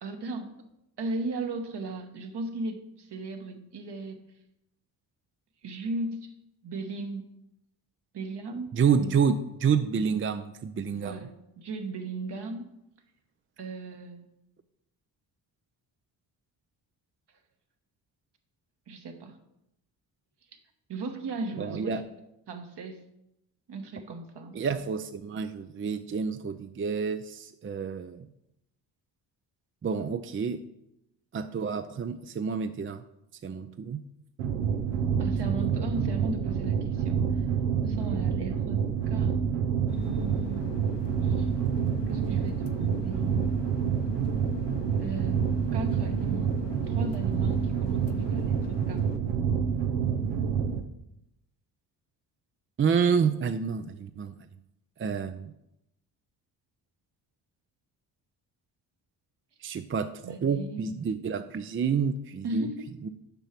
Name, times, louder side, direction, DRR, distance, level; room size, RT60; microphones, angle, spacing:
voice 1, 0.0-0.6 1.0-4.2 5.6-6.3 6.6-7.3 8.1-9.4 10.9-12.6 13.6-14.3 18.9-19.4 20.9-22.0 22.5-23.0 23.7-24.6 35.2-37.4 37.8-39.3 39.9-40.9 41.2-41.5 42.1-43.5 45.0-46.5 46.9-49.1 60.2-60.9 62.4-62.9, right 3 dB, 55° right, 5 dB, 1.5 m, -37 dB
voice 2, 8.7-11.2 21.6-22.0 24.5-28.3 29.8-30.6 31.3-33.0 33.4-34.0 52.8-54.3 55.0-55.5 59.6-60.1 60.4-62.7 63.0-63.1, right 6 dB, 25° right, 10 dB, 0.5 m, -28 dB
sound 1, 34.4-50.8, right 7 dB, 80° right, 0.9 m, -28 dB
sound 2, 39.9-49.2, left 7 dB, 60° left, 0.9 m, -45 dB
6.9 x 5.6 x 5.9 m, 0.85 s
hypercardioid pair, 50°, 48 cm